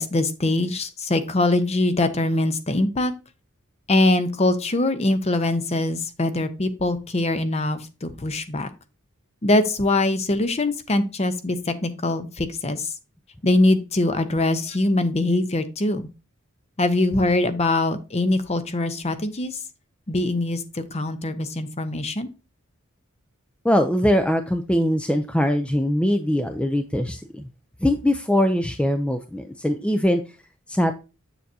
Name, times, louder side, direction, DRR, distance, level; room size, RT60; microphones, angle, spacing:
voice 1, 0.0-3.1 3.9-8.7 9.4-12.9 13.4-16.1 16.8-19.6 20.1-22.3, left 2 dB, 30° left, 11 dB, 0.7 m, -23 dB
voice 2, 23.6-27.4 27.8-30.2 30.7-31.0, equal, 5° left, 7 dB, 0.4 m, -22 dB
7.5 x 6.9 x 2.7 m, 0.30 s
head